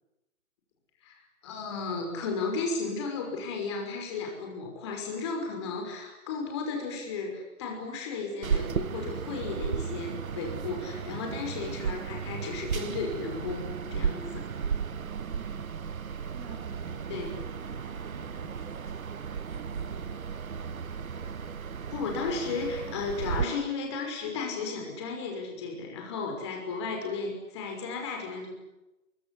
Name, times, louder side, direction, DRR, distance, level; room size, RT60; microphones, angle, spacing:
voice 1, 1.0-14.5 17.1-17.3 21.9-28.5, left 4 dB, 20° left, 2 dB, 5.7 m, -34 dB
sound 1, 8.4-23.5, right 6 dB, 70° right, 1.1 m, -34 dB
voice 2, 15.0-20.3, right 6 dB, 10° right, 0 dB, 2.2 m, -50 dB
26.0 x 23.5 x 9.8 m, 0.96 s
hypercardioid pair, 170°, 43 cm